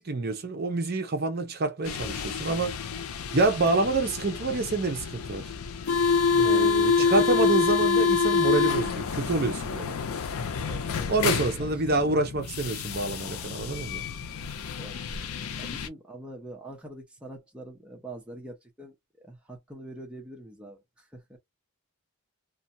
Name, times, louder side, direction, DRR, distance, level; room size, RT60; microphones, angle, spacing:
voice 1, 0.0-2.8 3.3-5.4 6.3-9.9 11.1-14.0, right 3 dB, 45° right, 0.6 m, -27 dB
sound 1, 1.9-15.9, left 5 dB, 75° left, 0.5 m, -27 dB
voice 2, 6.4-7.5 10.7-11.2 11.6-12.2 14.8-15.1 15.6-21.4, right 1 dB, 5° right, 0.6 m, -44 dB
2.5 x 2.2 x 2.7 m
head